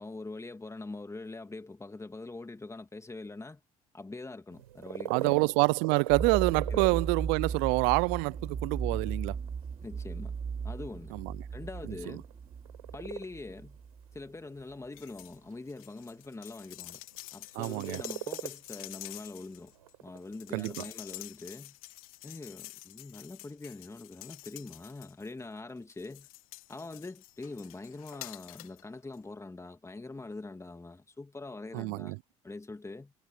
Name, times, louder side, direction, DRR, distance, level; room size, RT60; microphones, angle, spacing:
voice 1, 0.0-3.6 3.9-5.5 6.7-7.0 9.8-10.3 10.6-11.1 11.5-12.2 12.9-13.8 14.1-17.0 17.3-19.7 20.0-21.8 22.2-26.3 26.7-32.2 32.4-33.1, left 3 dB, 15° left, 2.5 m, -43 dB
sound 1, 4.5-21.2, right 13 dB, 85° right, 7.1 m, -43 dB
voice 2, 5.1-9.4 11.1-11.3 17.6-18.0 20.5-20.7 31.7-32.2, right 37 dB, 70° right, 0.4 m, -27 dB
sound 2, 6.1-14.2, right 6 dB, 35° right, 3.0 m, -37 dB
sound 3, 14.9-15.4 15.7-25.4 25.9-28.8 29.1-29.2, left 21 dB, 80° left, 2.0 m, -48 dB
hypercardioid pair, 60°, 18 cm